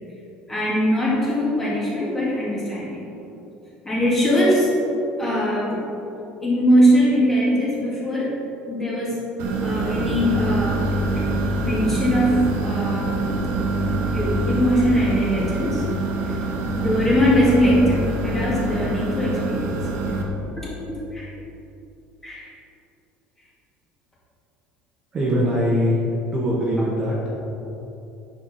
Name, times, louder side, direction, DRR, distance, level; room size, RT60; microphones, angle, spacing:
voice 1, 0.5-3.1 3.8-4.7 5.2-5.9 6.4-8.3 8.7-9.2 9.6-11.2 11.6-13.2 14.1-15.8 16.3-16.4 16.7-19.8 20.9-21.3 22.2-22.5, equal, 10° left, -7 dB, 2.1 m, -21 dB
sound 1, 9.4-20.2, right 2 dB, 75° right, 1.3 m, -25 dB
voice 2, 25.1-26.0 26.3-27.3, equal, 25° right, -5 dB, 1.5 m, -22 dB
9.4 x 6.4 x 4.3 m, 2.9 s
cardioid pair, 165°, 3 cm